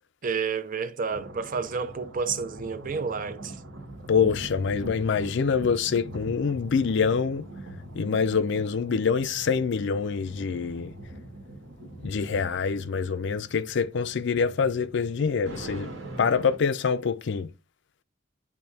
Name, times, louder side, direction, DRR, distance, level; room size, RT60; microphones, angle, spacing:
voice 1, 0.2-3.6, right 5 dB, 45° right, 0.5 m, -30 dB
sound 1, 1.1-16.6, right 1 dB, 80° right, 1.8 m, -42 dB
voice 2, 4.1-7.5 7.9-10.9 12.0-15.9 16.2-17.5, left 5 dB, 65° left, 0.5 m, -25 dB
10.5 x 3.6 x 2.7 m
head